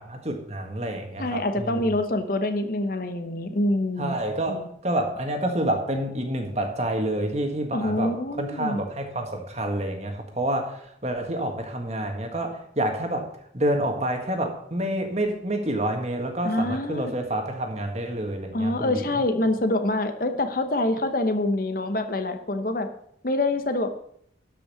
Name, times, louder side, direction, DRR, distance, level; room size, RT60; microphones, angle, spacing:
voice 1, 0.0-1.8 4.0-13.3 13.5-19.0, right 1 dB, 35° right, 4 dB, 1.7 m, -28 dB
voice 2, 1.2-4.1 4.5-4.6 7.7-8.8 16.4-17.1 18.5-22.9 23.2-23.9, left 1 dB, 50° left, 8 dB, 0.9 m, -25 dB
12.5 x 5.7 x 6.9 m, 0.70 s
head